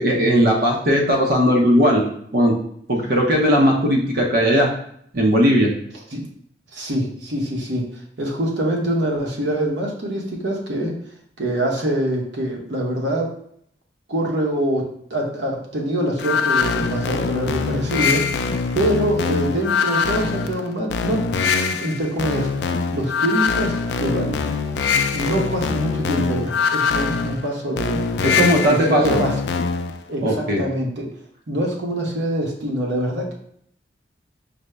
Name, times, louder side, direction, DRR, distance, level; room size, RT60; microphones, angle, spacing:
voice 1, 0.0-2.0 2.3-2.5 2.9-4.7 5.1-5.7 28.2-29.2 30.2-30.6, equal, 55° right, 0 dB, 0.6 m, -17 dB
voice 2, 6.7-7.8 8.2-11.0 11.4-13.3 14.1-18.5 18.7-21.3 21.7-22.5 22.9-24.4 25.1-28.1 28.6-29.3 30.1-31.1 31.5-33.3, right 1 dB, 90° right, -1 dB, 0.9 m, -24 dB
sound 1, 16.2-30.0, left 5 dB, 70° left, 0.3 m, -23 dB
5.1 x 2.1 x 3.2 m, 0.68 s
head